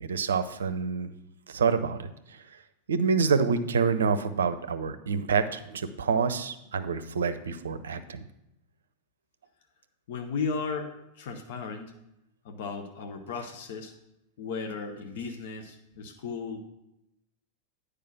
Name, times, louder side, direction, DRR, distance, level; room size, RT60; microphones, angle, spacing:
voice 1, 0.0-1.1 1.5-2.4 2.9-8.3, right 5 dB, 65° right, 12 dB, 0.6 m, -27 dB
voice 2, 10.1-12.0 12.4-13.9 14.4-16.6, left 5 dB, 55° left, 5 dB, 0.9 m, -35 dB
9.3 x 5.0 x 5.9 m, 0.86 s
figure-of-eight pair, 90°, 0 cm